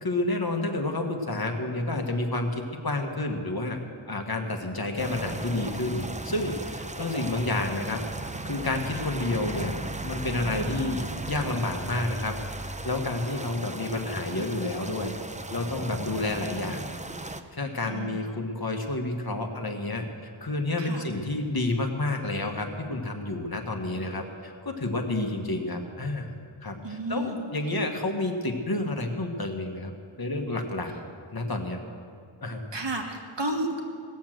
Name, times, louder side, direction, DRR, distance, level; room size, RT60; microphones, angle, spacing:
voice 1, 0.0-3.8 4.1-8.0 8.4-9.7 10.0-12.3 12.8-15.1 15.5-16.8 17.3-26.3 26.6-29.9 30.2-30.9 31.3-31.8 32.4-32.6, left 2 dB, 45° left, 3 dB, 1.5 m, -30 dB
sound 1, 5.0-17.4, right 2 dB, 15° right, 0.6 m, -36 dB
voice 2, 17.8-18.2 20.8-21.1 26.8-27.4 32.7-33.8, right 1 dB, 60° right, 1 dB, 1.9 m, -32 dB
18.5 x 7.3 x 7.5 m, 2.4 s
wide cardioid pair, 60°, 49 cm